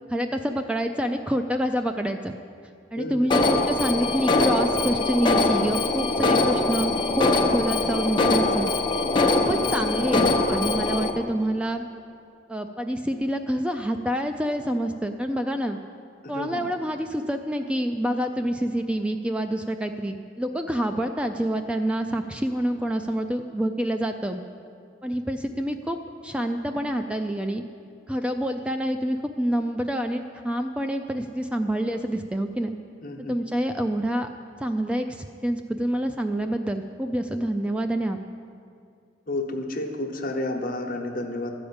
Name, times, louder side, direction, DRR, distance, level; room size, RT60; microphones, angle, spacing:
voice 1, 0.1-2.3 2.9-8.7 9.3-11.9 12.5-15.8 16.3-24.4 25.0-27.6 28.1-32.7 33.2-34.3 34.6-38.2, right 1 dB, 5° right, 6 dB, 0.3 m, -27 dB
voice 2, 3.0-3.3 9.1-9.7 16.3-16.7 33.0-33.3 39.3-41.5, left 1 dB, 50° left, 3 dB, 1.1 m, -31 dB
Alarm, 3.3-11.1, left 2 dB, 25° left, 0.8 m, -22 dB
12.5 x 5.0 x 8.7 m, 2.4 s
head